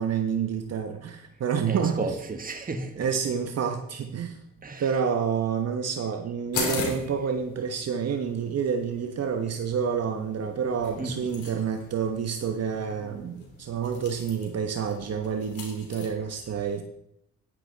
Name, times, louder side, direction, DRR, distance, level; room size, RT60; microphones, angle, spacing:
voice 1, 0.0-2.0 3.0-4.4 4.8-16.8, right 7 dB, 55° right, 5 dB, 1.2 m, -28 dB
voice 2, 1.7-3.1 4.6-4.9 11.0-11.3 12.7-13.3, right 3 dB, 30° right, 5 dB, 1.7 m, -34 dB
sound 1, 6.5-16.1, left 4 dB, 75° left, 3.5 m, -39 dB
10.5 x 9.9 x 4.1 m, 0.75 s
cardioid pair, 90°, 30 cm